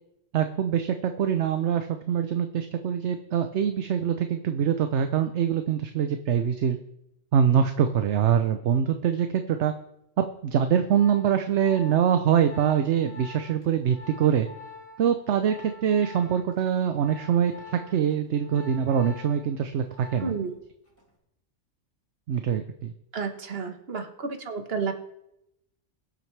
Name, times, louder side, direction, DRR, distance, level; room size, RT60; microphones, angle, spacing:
voice 1, 0.3-6.8 7.3-9.7 10.2-14.5 15.0-20.3 22.3-22.9, right 8 dB, 70° right, 8 dB, 1.0 m, -24 dB
Organ, 10.6-20.6 20.9-21.2, left 3 dB, 10° left, 4.1 m, -46 dB
voice 2, 20.2-20.5 23.1-24.9, right 5 dB, 55° right, 5 dB, 1.5 m, -31 dB
22.0 x 7.7 x 3.3 m, 0.82 s
omnidirectional pair, 1.3 m